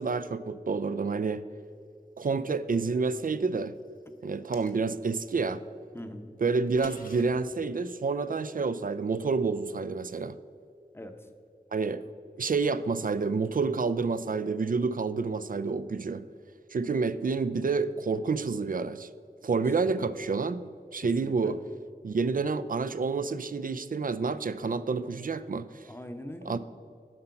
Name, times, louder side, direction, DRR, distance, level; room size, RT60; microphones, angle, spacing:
voice 1, 0.0-1.4 2.2-3.8 4.2-5.6 6.4-10.4 11.7-12.1 12.4-16.3 16.7-19.1 19.4-21.6 22.0-25.9 26.4-26.6, right 4 dB, 60° right, 14 dB, 0.4 m, -29 dB
sound 1, 4.3-5.2 6.5-7.2, left 2 dB, 60° left, 0.9 m, -47 dB
voice 2, 5.9-6.3 10.9-11.3 19.8-20.1 21.0-21.5 25.9-26.6, left 1 dB, 15° left, 7 dB, 0.7 m, -42 dB
7.7 x 5.6 x 5.7 m, 2.5 s
wide cardioid pair, 45°, 16 cm